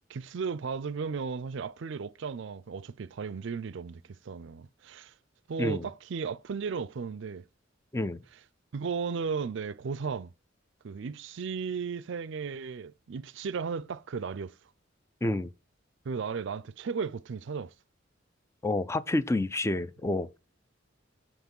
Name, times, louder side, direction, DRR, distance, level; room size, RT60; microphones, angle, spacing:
voice 1, 0.1-5.1 5.5-7.4 8.7-10.3 10.8-14.5 16.1-17.7, right 5 dB, 65° right, 0.4 m, -35 dB
voice 2, 18.6-20.3, left 2 dB, 15° left, 0.4 m, -29 dB
7.0 x 5.9 x 5.3 m
head